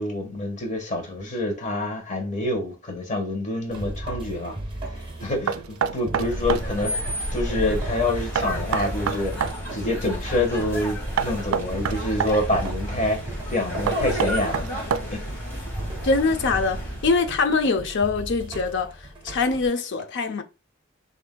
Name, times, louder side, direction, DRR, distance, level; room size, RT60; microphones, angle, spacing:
voice 1, 0.0-4.6 4.8-15.2, left 1 dB, 35° left, 1.3 m, -27 dB
sound 1, 3.7-19.7, right 1 dB, 25° right, 0.8 m, -37 dB
Knock, 5.5-6.7 8.4-9.6 11.2-12.4 13.9-15.3, right 7 dB, 80° right, 0.3 m, -26 dB
sound 2, 6.2-17.3, equal, 10° left, 2.0 m, -32 dB
voice 2, 16.0-20.4, left 4 dB, 60° left, 0.6 m, -23 dB
6.8 x 2.8 x 2.2 m
head